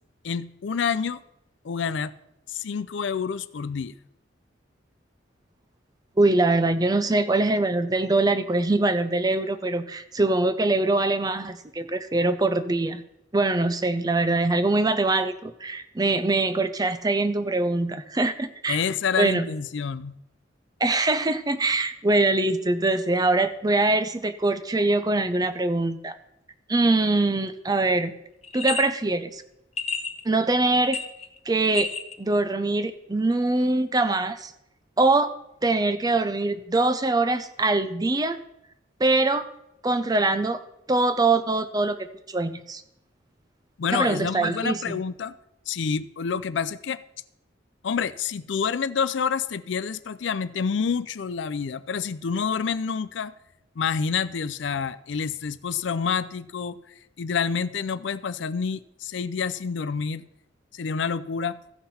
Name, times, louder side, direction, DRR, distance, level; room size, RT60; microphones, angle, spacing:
voice 1, 0.2-1.2 1.6-2.1 2.5-3.9 18.7-20.2 43.8-45.3 45.7-47.0 47.8-53.3 53.8-60.2 60.7-61.6, left 6 dB, 75° left, 14 dB, 0.4 m, -28 dB
voice 2, 6.2-13.0 13.3-18.8 19.2-19.5 20.8-26.1 26.7-28.1 28.5-29.4 30.2-31.0 31.5-31.9 32.2-34.5 35.0-35.3 35.6-38.4 39.0-39.4 39.8-40.6 40.9-42.0 42.3-42.8 43.9-45.0, right 2 dB, 20° right, 11 dB, 0.5 m, -23 dB
sound 1, 28.4-28.9 29.8-30.2 30.7-31.4 31.6-32.1, left 4 dB, 35° left, 0.8 m, -30 dB
15.0 x 5.8 x 4.2 m, 0.83 s
head